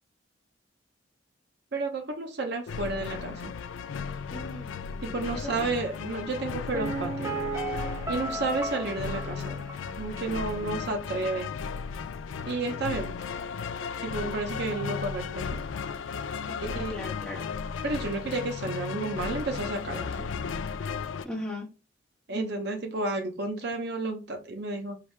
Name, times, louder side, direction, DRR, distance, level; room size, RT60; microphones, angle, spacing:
voice 1, 1.7-3.5 5.0-7.4 8.1-9.7 10.0-11.5 12.5-13.2 14.0-15.6 16.8-16.9 17.8-20.3 22.3-25.0, right 3 dB, 60° right, 0.7 m, -31 dB
sound 1, 2.7-21.2, left 6 dB, 85° left, 0.4 m, -35 dB
voice 2, 4.3-5.0 5.3-5.8 8.1-8.5 16.5-17.4 21.2-21.7, left 1 dB, 5° left, 1.5 m, -39 dB
Piano, 6.7-10.5 10.8-10.9, right 2 dB, 15° right, 0.5 m, -35 dB
4.8 x 2.7 x 3.3 m
head